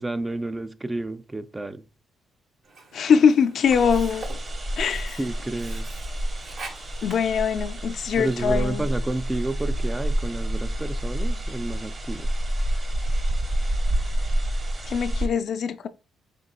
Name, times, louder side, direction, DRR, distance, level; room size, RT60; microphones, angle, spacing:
voice 1, 0.0-1.8 5.2-5.9 8.2-12.3, right 2 dB, 15° right, 0.4 m, -30 dB
Sink (filling or washing), 2.6-8.6, right 3 dB, 60° right, 1.5 m, -45 dB
voice 2, 2.9-4.3 4.8-5.2 7.0-8.9 14.9-15.9, left 6 dB, 60° left, 0.4 m, -22 dB
sound 1, 3.6-15.3, right 1 dB, 40° right, 1.3 m, -28 dB
5.2 x 3.7 x 2.2 m
cardioid pair, 90°, 0 cm